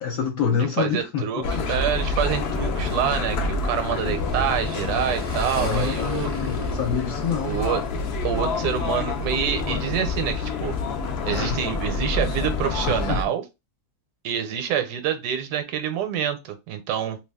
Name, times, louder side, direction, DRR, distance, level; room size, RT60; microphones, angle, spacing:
voice 1, 0.0-1.2 5.4-7.5 11.2-11.6 12.8-13.2, left 7 dB, 65° left, 1.1 m, -26 dB
voice 2, 0.5-6.3 7.4-7.8 8.2-10.7 11.3-13.4 14.2-17.2, right 9 dB, 80° right, 1.1 m, -27 dB
sound 1, 1.4-13.2, left 3 dB, 85° left, 0.5 m, -27 dB
Motorcycle / Engine, 2.3-9.3, equal, 25° left, 0.5 m, -38 dB
2.7 x 2.3 x 3.4 m
omnidirectional pair, 1.7 m